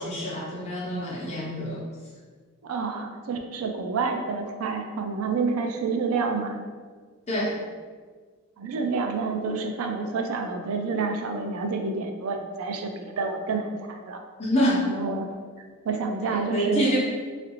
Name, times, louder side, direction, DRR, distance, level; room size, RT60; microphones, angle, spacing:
voice 1, 0.0-1.8 7.3-7.6 14.4-14.9 16.5-17.0, equal, 30° left, -5 dB, 0.7 m, -26 dB
voice 2, 2.6-6.6 8.6-14.2 14.6-15.3 15.8-17.0, right 4 dB, 80° right, 5 dB, 0.4 m, -28 dB
3.0 x 2.5 x 3.0 m, 1.5 s
head